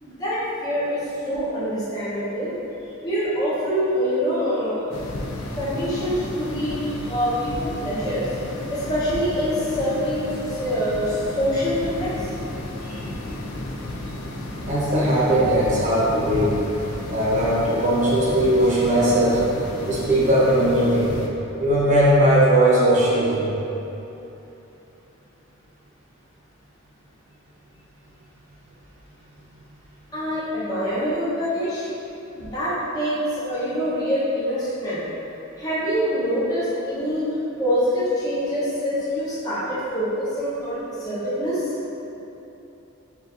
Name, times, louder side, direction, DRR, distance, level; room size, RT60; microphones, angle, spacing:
voice 1, 0.0-2.5 3.0-4.8 5.6-8.3 8.7-12.1 30.1-31.9 32.3-35.0 35.6-37.2 37.6-41.7, equal, 15° left, -12 dB, 0.9 m, -25 dB
sound 1, 4.9-21.3, left 1 dB, 70° left, 0.4 m, -33 dB
voice 2, 14.7-16.5 17.1-19.4 19.9-21.2 21.6-23.5, right 1 dB, 35° right, -7 dB, 0.9 m, -19 dB
6.8 x 2.5 x 2.6 m, 2.9 s
head